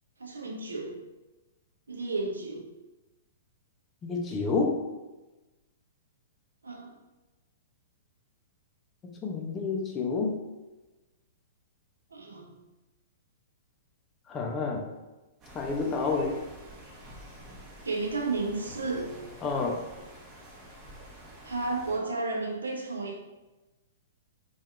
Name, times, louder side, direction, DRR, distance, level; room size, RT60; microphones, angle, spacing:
voice 1, 0.2-1.0 1.9-2.7 6.6-7.0 12.1-12.5 17.8-19.1 21.4-23.2, right 3 dB, 90° right, 2 dB, 0.5 m, -32 dB
voice 2, 4.0-4.8 9.0-10.4 14.3-14.9 15.5-16.4 19.4-19.9, left 4 dB, 20° left, 1 dB, 0.4 m, -29 dB
sound 1, 15.4-22.0, equal, 30° right, 0.9 m, -48 dB
2.6 x 2.3 x 2.3 m, 1.1 s
hypercardioid pair, 125°, 0 cm